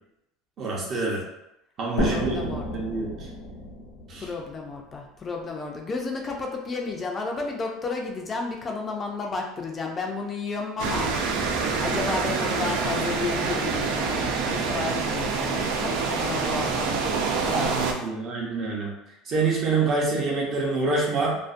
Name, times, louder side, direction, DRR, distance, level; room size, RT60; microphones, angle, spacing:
voice 1, 0.6-1.2 1.8-3.1 4.1-4.2 17.5-18.9 19.3-21.4, right 3 dB, 45° right, -3 dB, 0.7 m, -26 dB
sound 1, 2.0-5.5, left 1 dB, 90° left, 0.9 m, -32 dB
voice 2, 2.0-2.7 4.2-11.1 11.4-17.7, left 3 dB, 25° left, 1 dB, 0.4 m, -32 dB
sound 2, 10.8-17.9, right 4 dB, 75° right, 0.4 m, -26 dB
2.5 x 2.1 x 2.4 m, 0.88 s
supercardioid pair, 110°, 0 cm